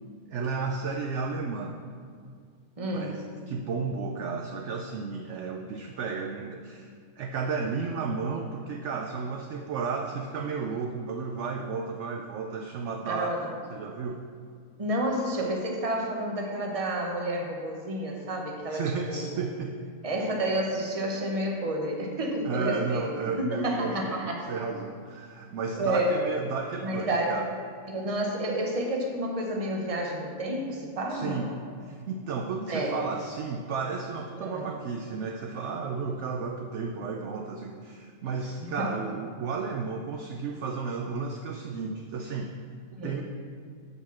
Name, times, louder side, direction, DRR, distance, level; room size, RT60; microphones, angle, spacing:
voice 1, 0.3-1.8 2.9-6.9 7.2-13.4 13.7-14.3 18.7-19.8 22.4-27.5 31.1-31.5 31.8-42.5 43.0-43.2, right 5 dB, 65° right, 3 dB, 0.7 m, -33 dB
voice 2, 2.8-3.2 13.1-13.5 14.8-19.2 20.0-24.5 25.7-26.2 26.8-27.4 27.9-31.5 32.7-33.0 34.4-34.7 38.6-38.9 43.0-43.2, right 1 dB, 25° right, 0 dB, 0.9 m, -30 dB
5.9 x 5.5 x 7.0 m, 2.1 s
omnidirectional pair, 1.6 m